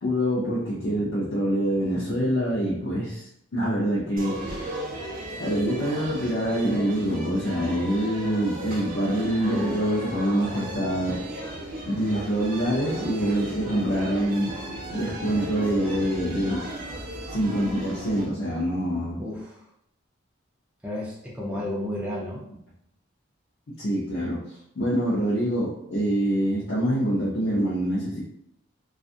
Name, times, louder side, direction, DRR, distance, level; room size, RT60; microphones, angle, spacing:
voice 1, 0.0-4.8 5.4-11.2 11.9-14.5 14.9-16.7 17.3-19.2 23.7-28.2, equal, 55° left, -7 dB, 0.6 m, -25 dB
sound 1, 4.2-18.2, right 1 dB, 45° right, 0.8 m, -36 dB
voice 2, 19.2-19.7 20.8-22.4, left 1 dB, 5° right, -5 dB, 0.4 m, -32 dB
2.6 x 2.3 x 2.4 m, 0.74 s
head